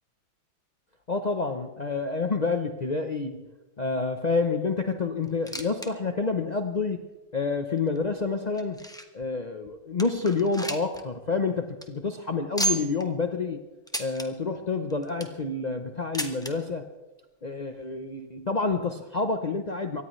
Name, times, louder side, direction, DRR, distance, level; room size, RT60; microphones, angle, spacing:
voice 1, 1.1-3.5 3.8-7.0 7.3-8.8 9.1-13.6 14.0-16.8 17.4-20.0, left 4 dB, 75° left, 6 dB, 0.4 m, -28 dB
sound 1, 5.2-5.9 6.2-6.3 7.0-7.1 7.8-9.2 9.7-9.8 10.0-11.0 11.3-11.4 11.7-11.9 12.6-13.0 13.9-14.3 14.9-15.4 16.1-16.5 17.5-17.6 17.8-17.9 18.7-18.8, right 1 dB, 5° left, 0.6 m, -32 dB
24.0 x 18.0 x 3.2 m, 1.1 s
omnidirectional pair, 2.1 m